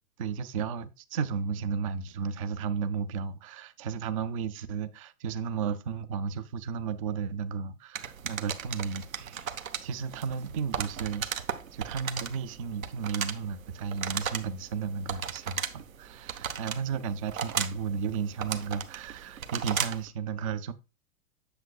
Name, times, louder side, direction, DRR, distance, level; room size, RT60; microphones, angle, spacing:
voice 1, 0.2-9.5 9.8-11.3 11.7-20.7, right 6 dB, 25° right, 0.4 m, -33 dB
sound 1, 7.9-20.1, right 8 dB, 65° right, 1.0 m, -36 dB
7.8 x 7.4 x 2.3 m
figure-of-eight pair, 110°, 44 cm